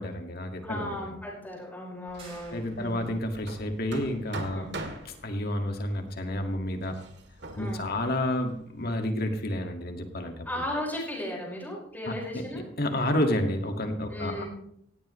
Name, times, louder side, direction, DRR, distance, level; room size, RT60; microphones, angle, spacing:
voice 1, 0.0-1.0 2.5-4.7 5.2-7.0 7.5-10.5 12.1-14.4, left 1 dB, 50° left, 4 dB, 2.0 m, -30 dB
voice 2, 0.6-3.1 4.5-4.7 7.6-7.8 10.5-12.6 14.1-14.5, left 1 dB, 10° left, -3 dB, 5.3 m, -36 dB
Hammer, 2.1-9.0, right 2 dB, 60° right, 2.0 m, -44 dB
sound 1, 2.2-3.3, right 3 dB, 30° right, 5.1 m, -52 dB
18.0 x 15.5 x 3.2 m, 0.71 s
head